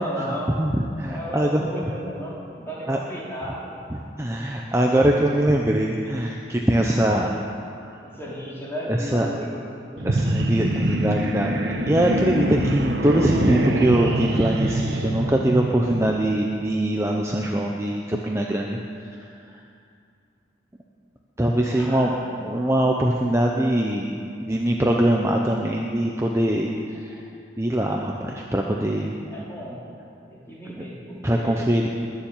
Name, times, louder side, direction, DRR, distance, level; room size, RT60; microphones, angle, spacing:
voice 1, 0.0-0.6 1.1-3.8 8.0-10.0 21.7-22.4 29.3-29.8 30.3-31.6, equal, 15° left, -6 dB, 3.4 m, -34 dB
voice 2, 0.6-1.6 2.9-3.0 3.9-7.4 7.7-8.0 8.9-9.3 10.0-18.8 19.1-19.6 21.4-22.1 22.4-27.2 27.6-29.2 30.7-30.8 31.2-31.9, right 1 dB, 15° right, 0 dB, 0.8 m, -22 dB
sound 1, 10.0-16.2, right 1 dB, 70° right, 1.3 m, -24 dB
21.0 x 7.4 x 8.9 m, 2.4 s
head